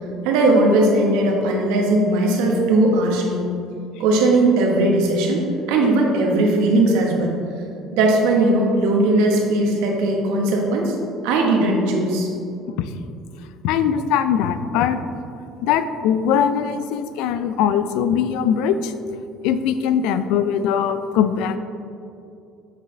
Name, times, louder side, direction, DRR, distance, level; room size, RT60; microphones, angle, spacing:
voice 1, 0.2-3.5 4.0-5.4 5.7-7.3 7.9-10.9 11.2-12.3, right 2 dB, 85° right, 0 dB, 1.2 m, -18 dB
voice 2, 13.6-15.0 15.6-18.9 19.4-21.6, left 8 dB, 65° left, 11 dB, 0.3 m, -21 dB
7.3 x 6.0 x 3.3 m, 2.6 s
cardioid pair, 175°, 0 cm